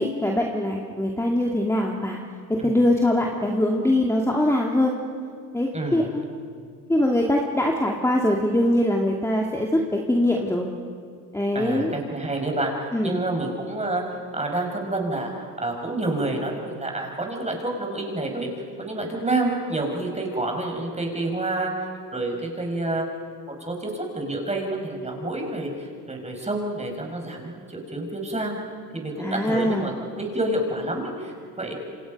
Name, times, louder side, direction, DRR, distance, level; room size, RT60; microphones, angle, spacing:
voice 1, 0.0-2.2 2.5-4.9 5.5-6.2 6.9-10.7 11.3-11.9 12.9-13.2 29.2-29.9, left 1 dB, 5° left, 0 dB, 2.2 m, -22 dB
voice 2, 5.7-6.1 11.5-12.7 13.0-18.5 18.8-23.1 23.7-28.6 28.9-31.7, right 2 dB, 15° right, 1 dB, 5.9 m, -28 dB
28.0 x 26.0 x 5.3 m, 2.2 s
hypercardioid pair, 70°, 41 cm